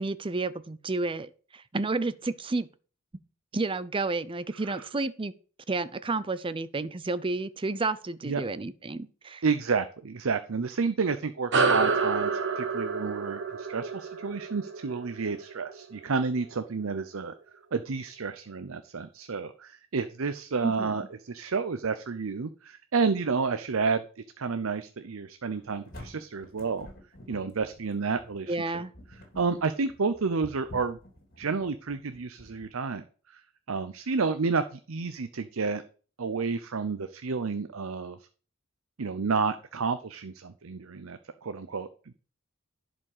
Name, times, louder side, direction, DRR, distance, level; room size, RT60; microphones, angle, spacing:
voice 1, 0.0-2.7 3.5-5.3 5.7-9.4 20.6-21.1 28.5-28.9, right 3 dB, 25° right, 0.6 m, -31 dB
voice 2, 4.5-4.9 8.2-8.4 9.4-17.3 17.7-26.9 27.3-28.8 29.4-31.0 31.4-33.4 33.7-35.8 36.2-38.2 39.0-42.1, right 4 dB, 75° right, 0.7 m, -30 dB
sound 1, 11.5-16.3, right 4 dB, 60° right, 1.2 m, -28 dB
sound 2, 25.5-32.7, equal, 45° left, 3.3 m, -48 dB
11.0 x 5.1 x 6.6 m
head